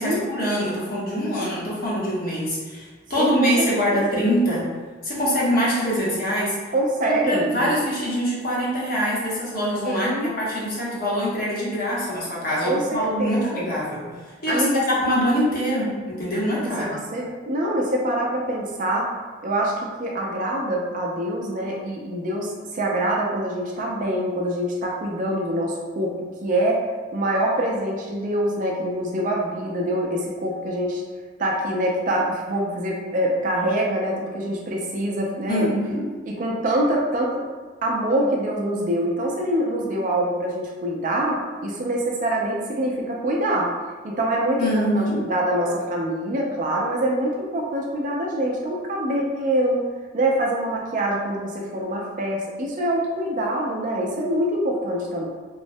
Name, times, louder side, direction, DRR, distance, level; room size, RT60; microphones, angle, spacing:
voice 1, 0.0-4.7 5.0-6.6 7.0-14.0 14.4-17.0 35.5-36.1 44.6-45.2, equal, 45° left, -6 dB, 0.8 m, -24 dB
voice 2, 3.2-4.2 6.7-7.7 9.9-10.3 12.6-13.7 14.5-14.8 16.6-19.1 19.4-26.8 27.1-31.0 31.4-35.8 36.3-37.4 37.8-43.7 44.0-49.8 50.1-55.3, right 1 dB, 40° right, -1 dB, 0.4 m, -25 dB
3.0 x 2.1 x 2.6 m, 1.4 s
head